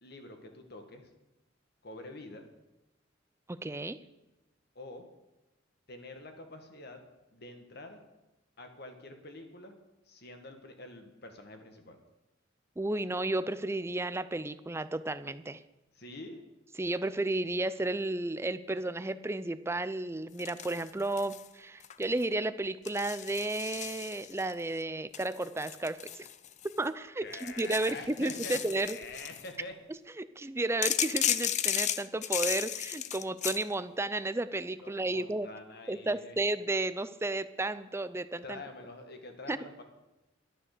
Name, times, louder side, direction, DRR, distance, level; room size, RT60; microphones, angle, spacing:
voice 1, 0.0-1.1 1.8-2.5 4.8-5.1 5.9-7.0 7.3-8.0 8.6-9.8 10.1-12.0 15.9-16.4 27.2-29.7 34.8-36.4 38.4-39.8, left 2 dB, 55° left, 5 dB, 1.8 m, -46 dB
voice 2, 3.5-4.0 12.8-15.6 16.8-26.3 26.8-29.0 30.2-35.5 35.9-38.6 39.5-39.6, right 2 dB, 15° right, 13 dB, 0.5 m, -33 dB
Dumping paper clips out on a desk, 20.4-21.5 21.8-22.2 22.9-24.5 25.1-26.9 27.3-29.5 30.8-33.6, left 10 dB, 35° left, 0.5 m, -34 dB
12.0 x 10.0 x 6.8 m, 1.0 s
head